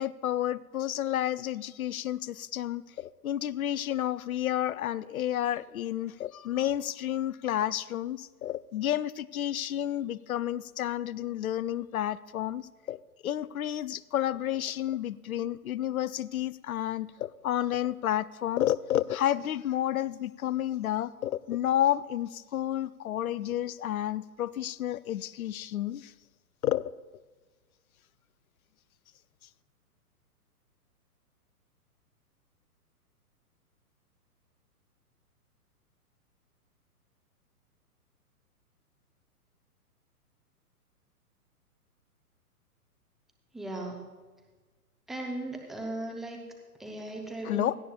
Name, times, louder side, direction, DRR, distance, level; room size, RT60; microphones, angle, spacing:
voice 1, 0.0-26.1 26.6-26.8 47.4-47.8, left 12 dB, 65° left, 19 dB, 0.6 m, -31 dB
voice 2, 43.5-44.0 45.1-46.4 46.8-47.7, right 2 dB, ahead, 0 dB, 0.5 m, -37 dB
16.5 x 14.0 x 2.3 m, 1.3 s
figure-of-eight pair, 120°, 46 cm